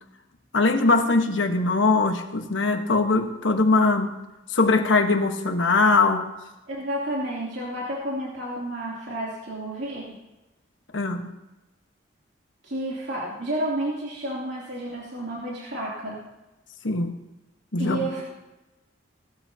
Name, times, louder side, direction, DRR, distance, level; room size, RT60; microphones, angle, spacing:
voice 1, 0.5-4.1 4.5-6.3 10.9-11.3 16.8-17.2 17.7-18.1, left 3 dB, 80° left, 5 dB, 1.3 m, -21 dB
voice 2, 6.7-10.2 12.6-16.2 17.8-18.2, right 1 dB, 60° right, -6 dB, 3.0 m, -31 dB
18.0 x 13.0 x 2.8 m, 1.0 s
head